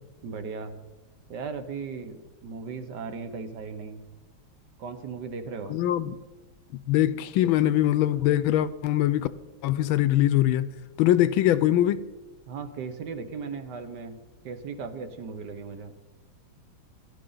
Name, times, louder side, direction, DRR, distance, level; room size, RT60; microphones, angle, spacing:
voice 1, 0.2-0.8 1.3-4.0 4.8-5.8 12.5-14.2 14.4-15.9, right 5 dB, 60° right, 1.4 m, -37 dB
voice 2, 5.7-6.2 6.9-9.3 9.6-10.7 11.0-12.0, left 13 dB, 85° left, 1.4 m, -22 dB
17.0 x 11.5 x 3.9 m
omnidirectional pair, 2.2 m